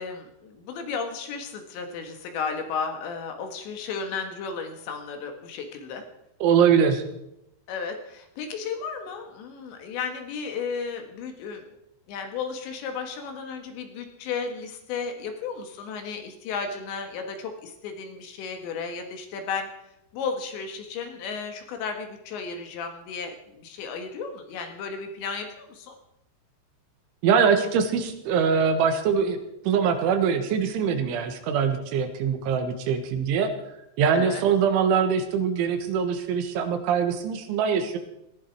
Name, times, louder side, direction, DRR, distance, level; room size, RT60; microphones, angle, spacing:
voice 1, 0.0-6.0 7.7-11.7 12.1-19.7 20.1-26.0 34.1-34.5, left 5 dB, 70° left, 5 dB, 3.9 m, -34 dB
voice 2, 6.4-7.0 27.2-29.4 29.7-33.5 34.0-38.0, right 6 dB, 80° right, 7 dB, 3.9 m, -23 dB
18.5 x 15.0 x 4.7 m, 0.83 s
omnidirectional pair, 5.5 m